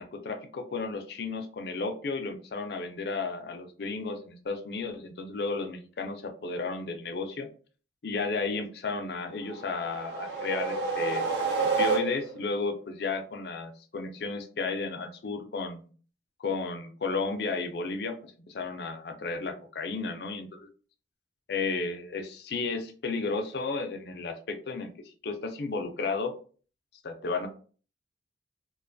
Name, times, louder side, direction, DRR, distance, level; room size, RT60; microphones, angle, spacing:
voice 1, 0.0-7.5 8.0-11.2 11.6-15.9 16.4-20.7 21.5-26.3 27.0-27.5, left 4 dB, 65° left, 5 dB, 0.4 m, -33 dB
sound 1, 9.4-12.5, right 4 dB, 70° right, 0.7 m, -29 dB
2.5 x 2.2 x 2.5 m, 0.40 s
head